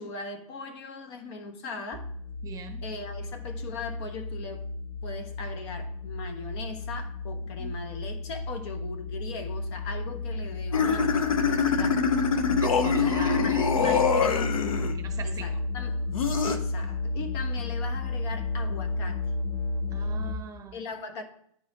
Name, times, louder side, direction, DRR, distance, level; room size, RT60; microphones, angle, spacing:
voice 1, 0.0-2.1 2.8-4.7 5.0-12.0 12.8-14.7 15.2-16.1 16.4-19.2 20.7-21.2, left 3 dB, 50° left, 1.1 m, -39 dB
sound 1, 1.9-20.3, left 2 dB, 25° left, 1.6 m, -33 dB
voice 2, 2.4-2.8 7.6-7.8 10.4-10.5 12.5-14.1 14.9-15.5 19.9-20.8, right 5 dB, 20° right, 0.9 m, -41 dB
sound 2, 10.7-15.0 16.1-16.6, left 5 dB, 80° left, 0.8 m, -24 dB
10.5 x 4.1 x 2.9 m
hypercardioid pair, 115°, 17 cm